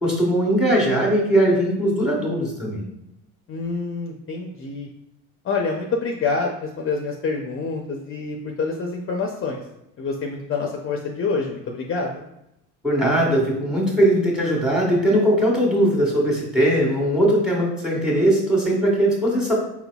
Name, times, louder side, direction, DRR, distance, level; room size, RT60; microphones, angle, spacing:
voice 1, 0.0-2.8 12.8-19.5, right 1 dB, ahead, -2 dB, 1.4 m, -20 dB
voice 2, 3.5-4.9 5.4-9.6 10.0-12.2, left 4 dB, 40° left, 1 dB, 0.5 m, -27 dB
4.2 x 3.9 x 2.3 m, 0.84 s
cardioid pair, 90°, 34 cm